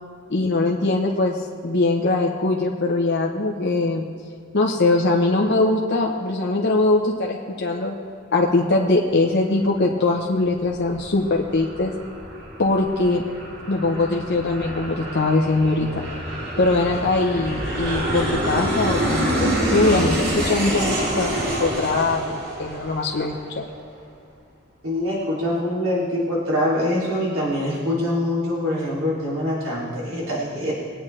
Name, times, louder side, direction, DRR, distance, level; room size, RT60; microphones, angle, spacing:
voice 1, 0.3-1.4 1.6-4.0 4.5-8.0 8.3-11.9 12.6-13.2 13.7-16.0 16.6-23.6, left 2 dB, 55° left, 0 dB, 0.9 m, -21 dB
Aircraft, 10.4-23.6, right 1 dB, 50° right, 2.2 m, -27 dB
voice 2, 24.8-30.7, left 1 dB, 90° right, -6 dB, 2.8 m, -24 dB
20.5 x 9.0 x 3.3 m, 2.3 s
head